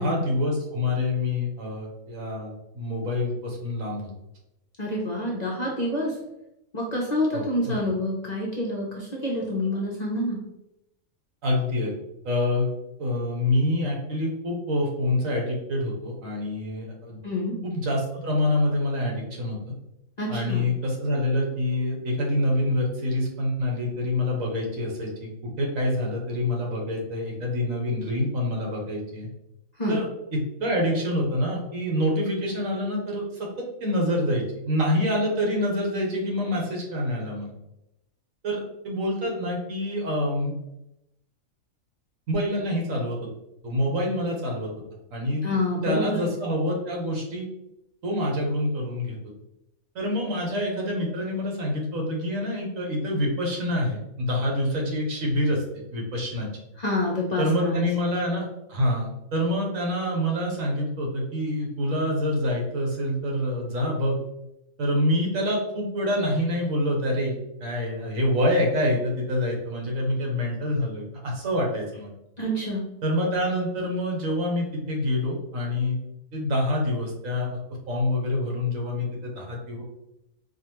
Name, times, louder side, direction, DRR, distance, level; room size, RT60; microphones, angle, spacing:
voice 1, 0.0-4.1 7.3-7.7 11.4-11.9 12.2-12.7 13.0-17.2 17.6-19.7 20.3-29.3 29.9-30.0 30.3-37.5 38.4-40.5 42.3-43.3 43.6-44.7 45.1-45.4 45.8-47.5 48.0-49.2 49.9-55.6 55.9-56.5 57.4-64.2 64.8-67.4 67.6-72.1 73.0-76.0 76.3-77.6 77.9-79.8, left 1 dB, 75° right, -1 dB, 1.4 m, -26 dB
voice 2, 4.8-6.1 6.7-10.4 17.2-17.5 20.2-20.6 29.8-30.0 45.4-46.3 56.8-57.9 72.4-72.8, left 1 dB, 45° left, -4 dB, 0.6 m, -27 dB
4.9 x 2.4 x 3.0 m, 0.87 s
omnidirectional pair, 1.4 m